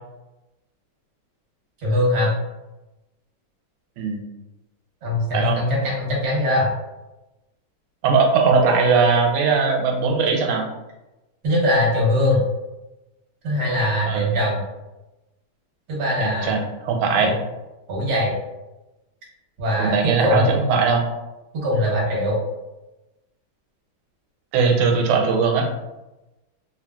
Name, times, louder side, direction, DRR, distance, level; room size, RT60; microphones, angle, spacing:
voice 1, 1.8-2.3 5.0-6.7 11.4-12.4 13.4-14.6 15.9-16.5 17.2-17.4 17.9-18.3 19.6-20.5 21.5-22.4, left 1 dB, 50° right, -3 dB, 0.8 m, -21 dB
voice 2, 5.3-5.6 8.0-10.6 14.1-14.3 16.2-17.3 19.8-21.1 24.5-25.7, right 5 dB, 90° right, 2 dB, 1.5 m, -19 dB
3.0 x 2.6 x 2.2 m, 1.0 s
omnidirectional pair, 2.3 m